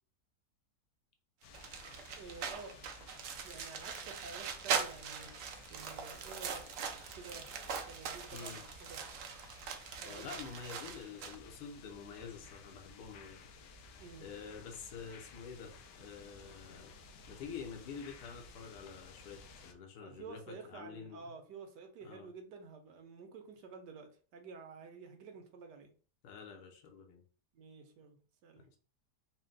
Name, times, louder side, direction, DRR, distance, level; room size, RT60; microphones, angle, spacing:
sound 1, 1.4-19.7, left 3 dB, 90° left, 1.3 m, -55 dB
sound 2, 1.5-11.4, right 6 dB, 65° right, 0.8 m, -41 dB
voice 1, 2.2-2.8 3.4-5.3 5.7-6.7 6.9-9.0 10.0-10.3 14.0-14.3 20.0-25.9 27.5-28.6, right 4 dB, 90° right, 5 dB, 1.4 m, -51 dB
voice 2, 8.3-8.6 10.0-13.4 14.2-15.7 16.0-16.9 17.3-21.3 22.0-22.3 26.2-27.2, left 6 dB, 70° left, 3 dB, 1.3 m, -48 dB
4.3 x 2.2 x 3.8 m, 0.40 s
omnidirectional pair, 1.8 m